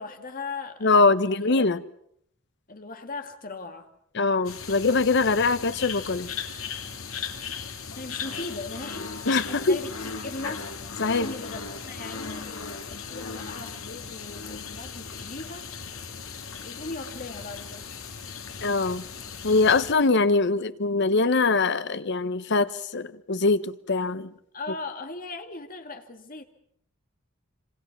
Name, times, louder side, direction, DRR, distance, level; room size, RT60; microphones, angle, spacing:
voice 1, 0.0-1.5 2.7-3.9 7.9-10.7 11.0-15.6 16.6-17.9 24.5-26.4, left 3 dB, 45° left, 2.1 m, -39 dB
voice 2, 0.8-1.8 4.1-6.3 9.3-9.8 11.0-11.3 18.6-19.0 19.4-24.3, left 3 dB, 60° left, 0.9 m, -23 dB
sound 1, 4.4-19.9, left 5 dB, 85° left, 2.2 m, -37 dB
27.0 x 25.5 x 6.0 m
head